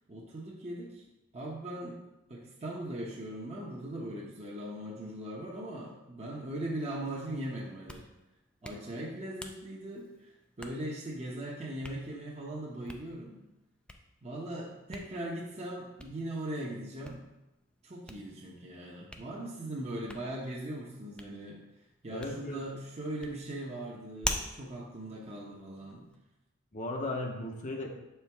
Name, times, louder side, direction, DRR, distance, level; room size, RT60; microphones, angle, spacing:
voice 1, 0.1-1.0 1.3-2.0 2.3-8.1 8.6-13.4 14.2-17.2 17.8-21.6 22.0-26.1, right 1 dB, 30° right, -4 dB, 0.8 m, -39 dB
Hands, 7.6-26.2, left 1 dB, 5° left, 0.4 m, -46 dB
voice 2, 22.1-22.6 26.7-27.9, left 2 dB, 35° left, 1 dB, 0.7 m, -36 dB
6.6 x 4.5 x 3.4 m, 0.96 s
head